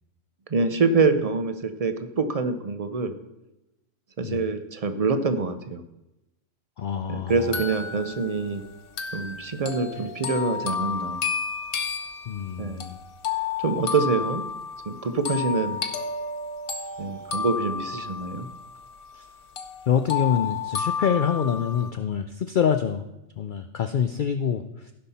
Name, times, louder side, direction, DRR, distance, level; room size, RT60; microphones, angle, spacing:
voice 1, 0.5-3.1 4.2-5.8 7.1-8.6 9.1-11.2 12.6-12.9 13.6-14.5 14.9-15.8 17.0-18.5, right 4 dB, 50° right, 9 dB, 0.4 m, -25 dB
voice 2, 6.8-7.4 12.3-13.0 19.9-23.0 23.4-24.9, left 7 dB, 70° left, 8 dB, 0.4 m, -26 dB
sound 1, 7.3-19.3 19.6-21.9, left 6 dB, 50° left, 1.0 m, -32 dB
15.5 x 5.5 x 4.1 m, 0.95 s
omnidirectional pair, 1.4 m